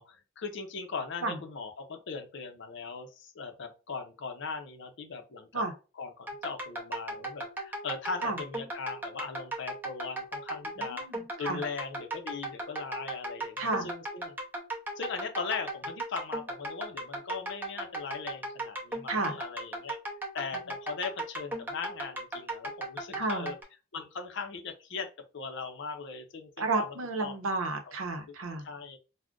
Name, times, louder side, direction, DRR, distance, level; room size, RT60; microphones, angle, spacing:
voice 1, 0.0-5.6 6.0-11.0 11.4-14.3 15.0-20.0 20.3-23.5 23.9-25.1 25.3-26.9 27.2-27.3 28.6-29.0, left 5 dB, 60° left, 6 dB, 0.6 m, -39 dB
sound 1, 6.3-23.6, right 1 dB, 10° right, 0.6 m, -37 dB
voice 2, 10.8-11.6 13.6-13.9 19.1-19.3 23.2-23.5 26.6-28.6, right 2 dB, 75° right, 5 dB, 0.7 m, -32 dB
2.4 x 2.1 x 3.5 m, 0.31 s
head